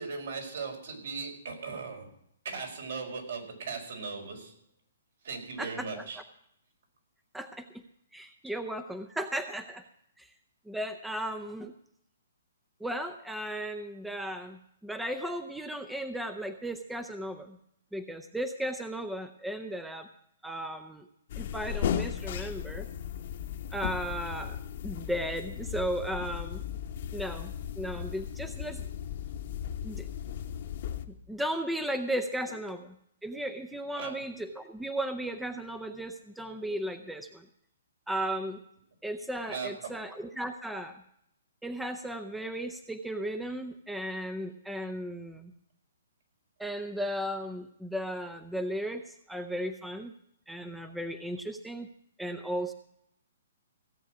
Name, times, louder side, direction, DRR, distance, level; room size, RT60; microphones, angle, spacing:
voice 1, 0.0-2.1 2.4-4.5 5.2-6.2 33.9-34.2 39.5-39.9, right 5 dB, 70° right, 2 dB, 4.9 m, -38 dB
voice 2, 5.6-6.0 7.3-7.8 8.1-9.8 10.2-10.3 10.7-11.7 12.8-17.6 17.9-20.1 20.4-21.0 21.4-22.9 23.7-24.6 24.8-26.6 27.1-28.8 29.8-30.1 31.1-32.9 33.2-37.5 38.1-38.6 39.0-41.0 41.6-45.5 46.6-50.1 50.5-51.9 52.2-52.7, right 1 dB, 5° right, 8 dB, 0.6 m, -35 dB
sound 1, 21.3-31.0, left 9 dB, 50° left, 1.1 m, -36 dB
17.0 x 8.1 x 6.1 m, 0.73 s
hypercardioid pair, 155°, 0 cm